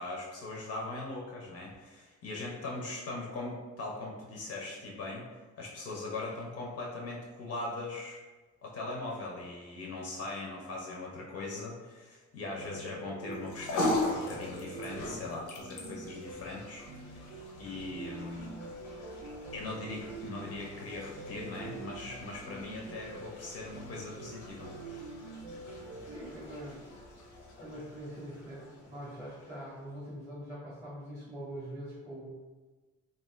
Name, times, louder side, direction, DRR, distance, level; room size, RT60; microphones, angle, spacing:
voice 1, 0.0-8.2 8.6-16.9 17.1-17.2 17.6-18.6 19.5-25.1, left 2 dB, 55° left, -2 dB, 0.5 m, -40 dB
sound 1, 12.6-26.3, right 3 dB, 65° right, 0.4 m, -46 dB
sound 2, 13.3-29.8, left 1 dB, 90° left, 0.7 m, -40 dB
voice 2, 26.1-26.9 27.6-32.3, equal, 5° right, -7 dB, 0.7 m, -43 dB
2.4 x 2.4 x 3.0 m, 1.3 s
cardioid pair, 145°, 31 cm